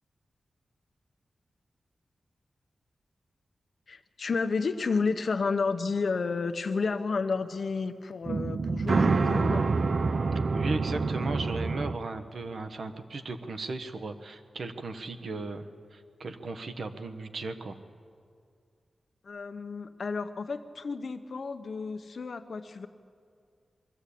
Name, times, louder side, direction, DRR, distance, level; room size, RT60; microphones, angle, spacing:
voice 1, 3.9-9.7 19.2-22.9, left 4 dB, 55° left, 9 dB, 0.9 m, -31 dB
sound 1, 8.3-11.9, right 4 dB, 45° right, 0.5 m, -27 dB
voice 2, 10.5-17.8, right 3 dB, 60° right, 8 dB, 1.1 m, -36 dB
22.0 x 14.5 x 8.5 m, 2.3 s
wide cardioid pair, 165°, 0 cm